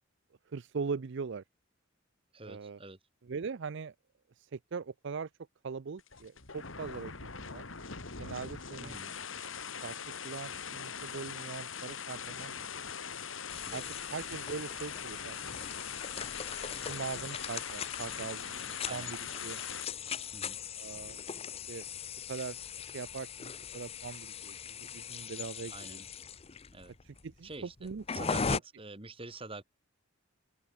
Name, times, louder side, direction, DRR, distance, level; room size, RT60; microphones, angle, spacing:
voice 1, 0.5-1.4 2.5-2.8 3.2-3.9 4.4-5.3 5.6-7.6 8.2-9.0 9.8-9.9 10.2-12.8 13.7-13.8 14.1-15.7 16.6-19.2 19.4-19.7 20.8-21.2 21.7-22.6 22.8-26.0 27.0-28.3, right 5 dB, 60° right, 0.5 m, -41 dB
voice 2, 2.3-3.0 8.8-9.1 13.7-14.2 18.8-19.2 20.3-20.6 25.7-26.1 26.7-27.0 27.4-29.6, right 3 dB, 25° right, 2.2 m, -46 dB
sound 1, 6.0-19.9, left 6 dB, 70° left, 2.5 m, -42 dB
sound 2, 13.5-28.6, left 6 dB, 30° left, 0.6 m, -40 dB
open air
head